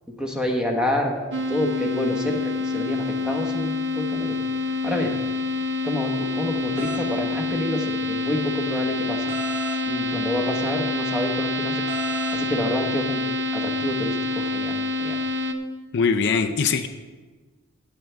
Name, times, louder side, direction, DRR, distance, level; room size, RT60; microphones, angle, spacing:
voice 1, 0.2-4.4 4.8-5.1 5.8-9.3 9.8-11.8 12.3-15.2, left 1 dB, 5° right, 1 dB, 1.2 m, -28 dB
sound 1, 1.3-15.5, left 2 dB, 55° right, 0.8 m, -27 dB
sound 2, 6.8-7.1 9.3-9.8 11.9-12.4, right 2 dB, 75° right, 1.6 m, -34 dB
voice 2, 15.9-16.9, left 5 dB, 55° left, 6 dB, 0.5 m, -21 dB
15.5 x 7.8 x 3.4 m, 1.3 s
head